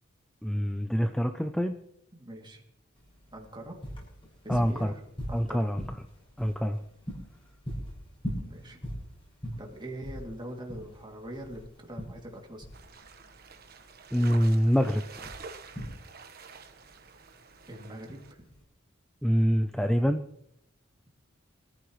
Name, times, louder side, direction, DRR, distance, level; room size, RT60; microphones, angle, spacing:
voice 1, 0.4-1.7 4.5-4.9 5.3-5.8 6.4-6.8 14.1-15.3 19.2-20.2, equal, 5° left, 6 dB, 0.6 m, -25 dB
voice 2, 2.1-2.6 3.3-3.8 4.4-5.0 5.3-5.8 8.4-8.8 9.6-12.7 17.7-18.4, right 1 dB, 25° right, 0 dB, 2.7 m, -42 dB
sound 1, 3.0-18.6, equal, 25° left, 6.6 m, -41 dB
sound 2, 12.7-18.3, right 5 dB, 50° right, 1.4 m, -48 dB
24.0 x 14.5 x 3.2 m, 0.76 s
head